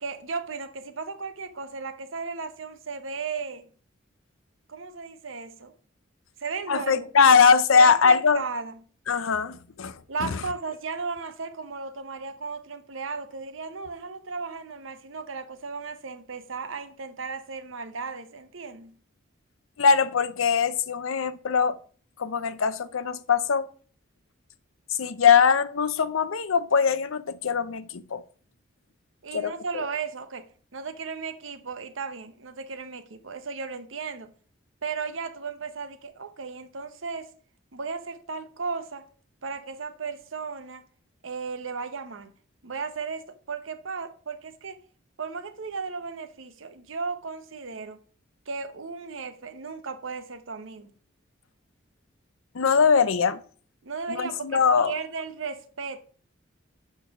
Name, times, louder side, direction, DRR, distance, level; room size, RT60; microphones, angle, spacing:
voice 1, 0.0-3.7 4.7-5.7 6.4-7.1 7.7-8.7 10.1-18.9 29.2-30.4 30.7-34.3 34.8-37.3 37.7-39.0 39.4-40.8 41.2-42.3 42.6-44.8 45.2-48.0 48.5-50.9 53.8-56.0, right 5 dB, 80° right, 0.9 m, -35 dB
voice 2, 6.7-8.4 9.1-10.4 19.8-21.8 22.2-23.7 25.0-28.2 29.3-29.9 52.5-53.4 54.1-54.9, left 6 dB, 90° left, 0.6 m, -22 dB
6.6 x 5.4 x 6.0 m
head